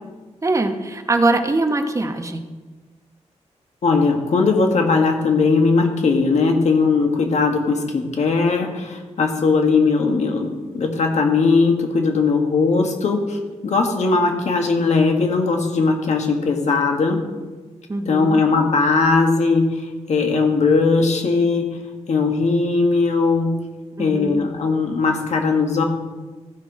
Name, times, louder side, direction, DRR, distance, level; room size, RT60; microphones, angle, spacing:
voice 1, 0.4-2.4 17.9-18.4 24.0-24.4, right 2 dB, 25° right, 6 dB, 1.0 m, -22 dB
voice 2, 3.8-17.3 18.0-19.8 20.1-21.8 22.1-23.5 24.0-25.8, left 4 dB, 70° left, 3 dB, 1.6 m, -19 dB
15.0 x 6.0 x 4.8 m, 1.3 s
wide cardioid pair, 115°, 12 cm